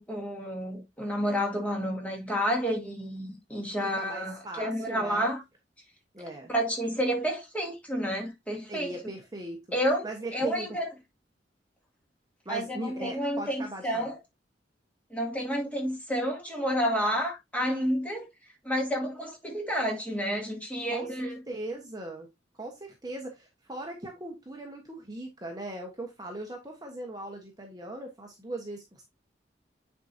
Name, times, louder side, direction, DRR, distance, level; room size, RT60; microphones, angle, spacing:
voice 1, 0.0-5.4 6.5-8.9 9.7-10.1 10.3-10.9 12.5-14.2 15.1-18.3 18.6-21.4, equal, 10° left, 2.3 m, -30 dB
voice 2, 3.9-5.3 6.1-6.5 8.7-9.6 10.0-10.8 12.4-14.1 20.9-22.3 22.6-29.0, right 1 dB, 20° right, 1.2 m, -39 dB
9.2 x 4.7 x 2.7 m
head